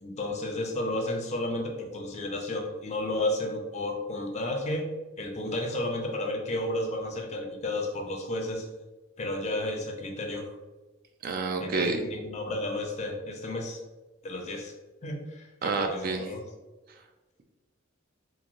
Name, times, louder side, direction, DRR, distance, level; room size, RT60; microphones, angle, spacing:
voice 1, 0.0-4.9 5.2-8.7 9.2-10.5 11.6-13.8 14.2-14.7 15.0-16.4, left 1 dB, 35° left, 1 dB, 0.5 m, -32 dB
voice 2, 11.2-12.0 15.6-16.2, right 4 dB, 45° right, 5 dB, 0.3 m, -28 dB
3.0 x 2.7 x 2.5 m, 1.2 s
head